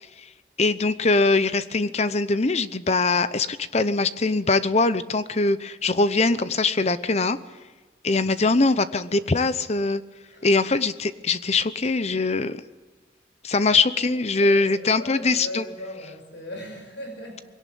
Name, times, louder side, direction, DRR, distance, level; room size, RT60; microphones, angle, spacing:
voice 1, 0.6-7.4 8.0-10.0 10.4-12.6 13.4-15.6, left 3 dB, 35° left, 14 dB, 0.8 m, -22 dB
voice 2, 13.6-14.0 14.3-17.4, equal, 90° left, 4 dB, 6.5 m, -38 dB
21.5 x 17.5 x 8.6 m, 1.3 s
head